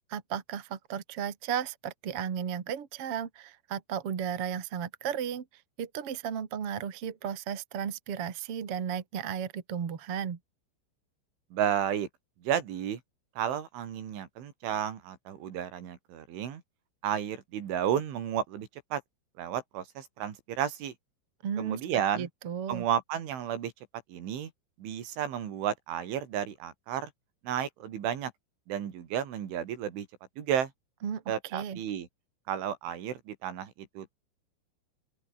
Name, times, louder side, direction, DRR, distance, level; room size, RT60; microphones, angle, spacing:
voice 1, 0.1-5.5 5.8-10.4 21.4-21.8 22.1-22.8 31.0-31.8, right 8 dB, 45° right, 2.0 m, -34 dB
voice 2, 11.5-12.1 12.4-13.0 13.4-16.6 17.0-19.0 19.4-20.9 21.6-22.3 22.7-23.7 24.1-24.5 24.8-27.1 27.4-28.3 28.7-30.1 30.4-30.7 31.3-32.1 32.5-34.1, right 9 dB, 70° right, 5.2 m, -32 dB
open air
omnidirectional pair, 5.8 m